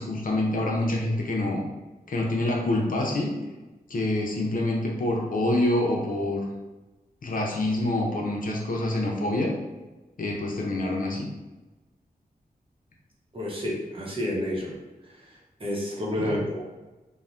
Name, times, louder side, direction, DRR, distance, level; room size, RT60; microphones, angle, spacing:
voice 1, 0.0-1.6 2.1-3.3 3.9-6.5 7.2-9.5 10.2-11.3 16.2-16.4, left 1 dB, 60° left, -1 dB, 0.6 m, -26 dB
voice 2, 13.3-14.8 15.1-16.8, left 1 dB, 35° right, -5 dB, 0.8 m, -30 dB
3.1 x 2.1 x 2.5 m, 1.1 s
wide cardioid pair, 75°, 16 cm